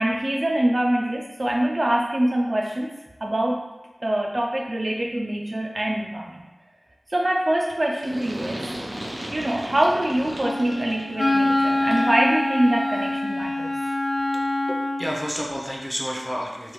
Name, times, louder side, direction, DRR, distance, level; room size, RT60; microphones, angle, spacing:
voice 1, 0.0-2.9 3.2-3.6 4.0-6.5 7.1-8.6 9.3-13.8, right 1 dB, 45° right, -1 dB, 0.3 m, -24 dB
sound 1, 8.0-12.2, right 1 dB, 90° right, 0.6 m, -35 dB
Wind instrument woodwind instrument, 10.4-15.2, left 1 dB, 70° left, 0.4 m, -25 dB
voice 2, 14.7-16.7, equal, 5° left, -2 dB, 0.6 m, -30 dB
3.4 x 2.3 x 3.0 m, 1.1 s
wide cardioid pair, 60°, 0 cm